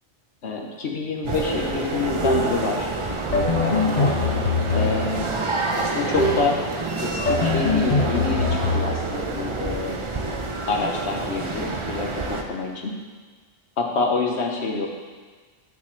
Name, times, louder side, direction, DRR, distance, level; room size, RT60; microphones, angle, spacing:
voice 1, 0.4-4.1 4.7-5.3 5.8-6.5 7.0-10.0 10.7-12.9 13.8-14.9, left 4 dB, 55° left, 0 dB, 1.3 m, -27 dB
sound 1, 1.2-12.4, right 3 dB, 40° right, 0.4 m, -28 dB
sound 2, 2.2-2.7 3.3-5.3 6.2-6.6 7.3-9.0, left 3 dB, 40° left, 0.8 m, -23 dB
10.5 x 6.8 x 3.3 m, 1.5 s
omnidirectional pair, 1.4 m